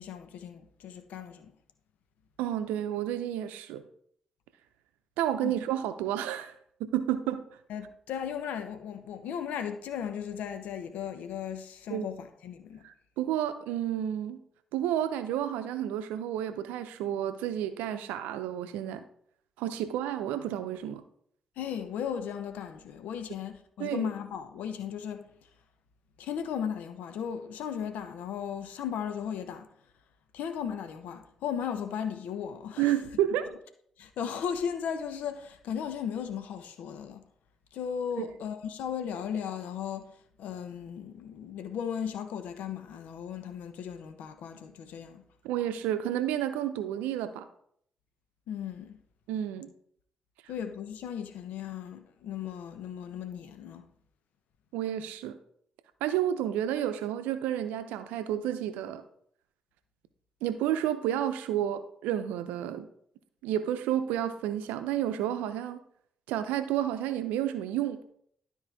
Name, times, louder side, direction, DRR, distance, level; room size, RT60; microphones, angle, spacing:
voice 1, 0.0-1.5 5.4-5.5 7.7-12.8 21.6-25.3 26.2-29.7 30.3-32.9 34.0-37.2 37.7-40.1 40.4-45.2 48.5-49.0 50.5-53.8, left 8 dB, 70° left, 0.8 m, -36 dB
voice 2, 2.4-3.8 5.2-6.5 6.8-7.4 11.9-12.1 12.8-14.4 14.7-19.0 19.6-21.0 23.8-24.1 32.8-33.5 38.1-38.3 45.4-47.5 49.3-49.7 54.7-55.4 56.0-59.0 60.4-62.9 63.4-65.8 66.3-68.0, right 11 dB, 80° right, 0.6 m, -31 dB
12.0 x 4.5 x 3.4 m
hypercardioid pair, 40°, 3 cm